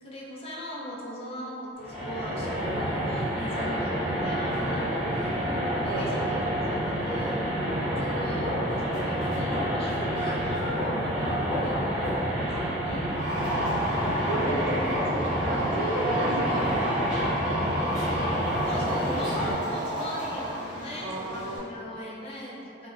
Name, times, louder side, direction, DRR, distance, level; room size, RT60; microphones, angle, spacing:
voice 1, 0.0-5.5 5.8-7.5 7.9-13.3 18.6-22.9, equal, 30° left, -5 dB, 0.5 m, -39 dB
sound 1, 1.8-19.5, equal, 5° right, 0.8 m, -28 dB
voice 2, 12.5-13.3 14.0-17.6 21.0-21.7, right 1 dB, 70° right, -4 dB, 0.5 m, -33 dB
sound 2, 13.1-21.6, equal, 35° right, 0.9 m, -32 dB
2.6 x 2.0 x 3.1 m, 2.6 s
head